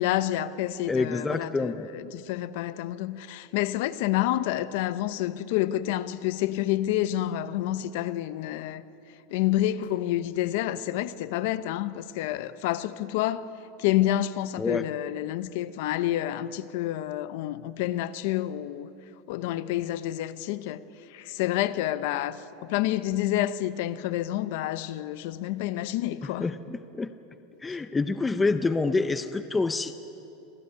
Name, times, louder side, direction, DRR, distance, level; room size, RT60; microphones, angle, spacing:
voice 1, 0.0-8.8 9.3-13.5 13.8-18.9 19.3-20.8 21.1-26.5, left 13 dB, 55° left, 0.8 m, -28 dB
voice 2, 0.9-1.9 14.6-14.8 26.2-27.1 27.6-30.0, left 3 dB, 10° left, 0.5 m, -27 dB
25.5 x 15.5 x 9.6 m
supercardioid pair, 180°, 0 cm